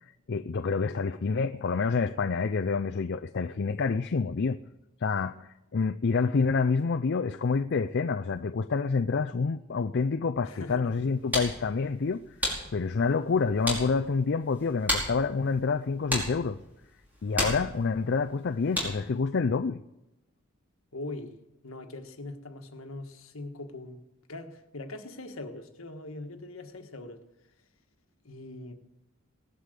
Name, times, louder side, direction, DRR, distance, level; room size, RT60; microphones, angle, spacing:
voice 1, 0.3-4.6 5.0-12.2 12.7-16.6 17.2-19.8, left 4 dB, 55° left, 0.5 m, -28 dB
voice 2, 10.4-10.9 20.9-21.4 21.6-24.0 24.3-27.2 28.2-28.7, left 2 dB, 70° left, 1.6 m, -41 dB
sound 1, 10.9-19.2, left 1 dB, 10° right, 4.9 m, -35 dB
18.0 x 11.5 x 6.7 m
head